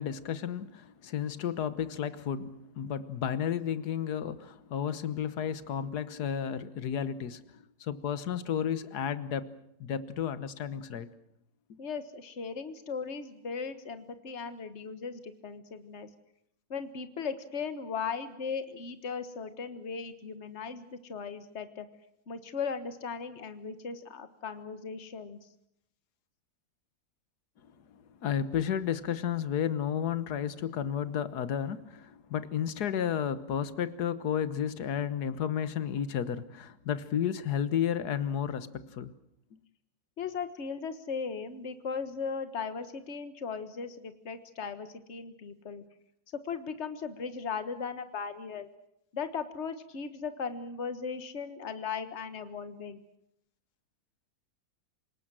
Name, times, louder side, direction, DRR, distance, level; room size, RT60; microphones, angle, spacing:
voice 1, 0.0-9.5 9.8-11.1 11.7-11.8 27.9-39.1 39.5-39.6, left 8 dB, 80° left, 1.6 m, -32 dB
voice 2, 11.8-16.1 16.7-21.9 22.3-25.4 40.2-45.8 46.3-48.7 49.1-53.0, left 5 dB, 45° left, 1.7 m, -37 dB
27.5 x 19.0 x 7.6 m
omnidirectional pair, 1.7 m